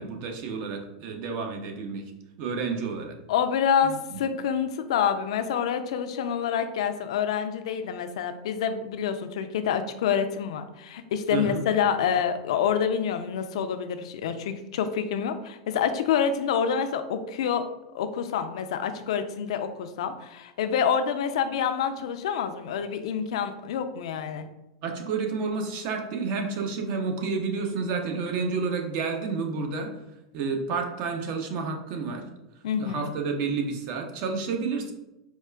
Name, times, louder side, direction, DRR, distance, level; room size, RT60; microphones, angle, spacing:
voice 1, 0.0-2.0 2.4-3.2 3.8-4.2 11.3-11.6 24.8-29.9 30.3-32.2 32.8-34.9, right 4 dB, 55° right, 3 dB, 0.7 m, -30 dB
voice 2, 3.3-17.7 17.9-24.5 32.6-33.0, left 7 dB, 75° left, 8 dB, 0.3 m, -27 dB
4.6 x 2.4 x 2.2 m, 0.95 s
hypercardioid pair, 105°, 3 cm